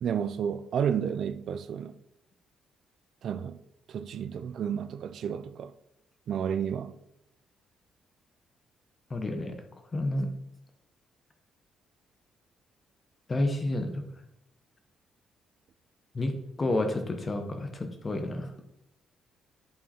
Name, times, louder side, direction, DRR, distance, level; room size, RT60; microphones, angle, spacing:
voice 1, 0.0-1.9 3.2-3.6 3.9-5.7 6.3-6.9, right 8 dB, 65° right, 0.3 m, -31 dB
voice 2, 9.1-9.6 9.9-10.3 13.3-14.0 16.1-18.5, left 1 dB, 30° left, 1.0 m, -30 dB
8.7 x 3.6 x 4.3 m
cardioid pair, 90°, 0 cm